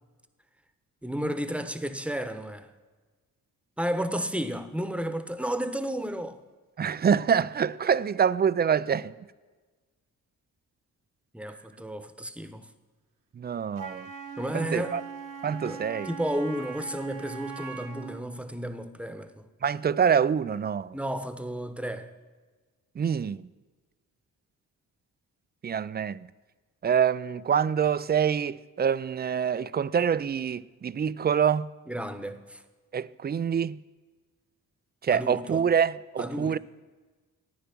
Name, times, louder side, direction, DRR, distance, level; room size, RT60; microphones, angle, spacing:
voice 1, 1.0-2.7 3.8-6.4 11.3-12.7 14.4-15.0 15.6-19.5 20.9-22.1 31.9-32.6 35.1-35.7 36.2-36.6, right 1 dB, 5° right, 1.0 m, -32 dB
voice 2, 6.8-9.1 13.4-14.1 14.5-15.0 15.4-16.1 19.6-21.0 23.0-23.5 25.6-26.2 26.8-31.7 32.9-33.8 35.0-36.6, right 7 dB, 25° right, 0.4 m, -26 dB
Wind instrument woodwind instrument, 13.8-18.3, right 6 dB, 55° right, 1.2 m, -41 dB
13.5 x 9.5 x 6.0 m
supercardioid pair, 55°, 38 cm